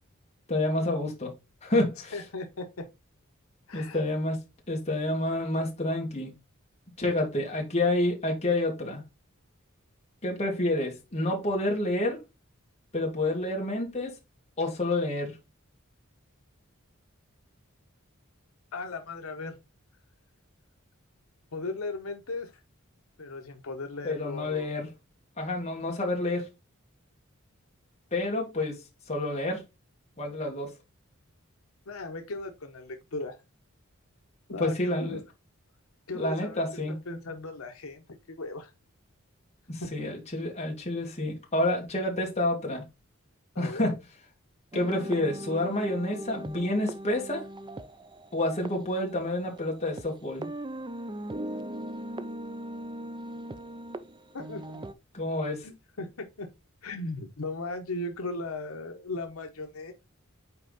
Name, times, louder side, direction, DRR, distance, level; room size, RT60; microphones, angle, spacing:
voice 1, 0.5-1.3 1.6-2.1 3.7-4.4 4.7-6.3 7.0-9.0 10.2-12.2 12.9-14.1 14.6-15.4 24.0-24.9 25.4-26.5 28.1-28.8 29.1-29.6 30.2-30.7 34.6-35.2 36.1-36.9 39.7-42.8 43.6-43.9 44.7-47.4 48.3-50.5 55.1-55.7, left 1 dB, 30° left, 2.0 m, -28 dB
voice 2, 2.1-2.9 3.7-4.0 18.7-19.6 21.5-22.5 23.2-24.7 31.9-33.4 34.5-35.2 36.1-38.7 39.8-40.1 43.5-43.8 54.3-54.8 55.6-56.5 56.8-59.9, left 2 dB, 85° left, 0.9 m, -37 dB
sound 1, 44.7-50.1 50.4-54.9, right 1 dB, 20° right, 0.5 m, -39 dB
5.8 x 4.5 x 4.0 m
head